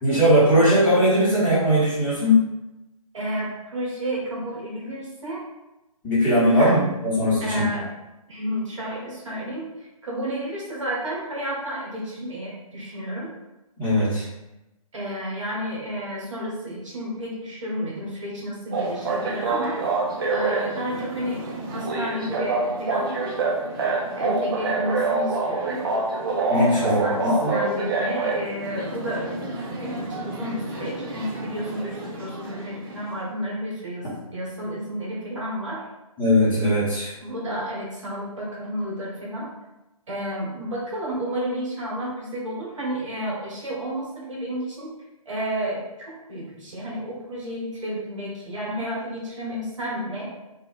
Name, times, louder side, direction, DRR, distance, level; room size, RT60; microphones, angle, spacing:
voice 1, 0.0-2.4 6.0-7.5 13.8-14.3 26.5-27.5 36.2-37.1, equal, 10° left, -12 dB, 1.2 m, -19 dB
voice 2, 3.1-5.4 6.5-6.8 7.4-7.9 8.3-13.3 14.9-19.8 20.3-23.1 24.2-25.8 26.7-29.4 29.7-35.9 37.2-39.5 40.1-44.9 45.2-50.3, equal, 55° right, -5 dB, 1.3 m, -31 dB
sound 1, 18.7-33.0, right 3 dB, 35° right, 0.6 m, -27 dB
3.4 x 2.4 x 3.3 m, 0.97 s
figure-of-eight pair, 135°, 19 cm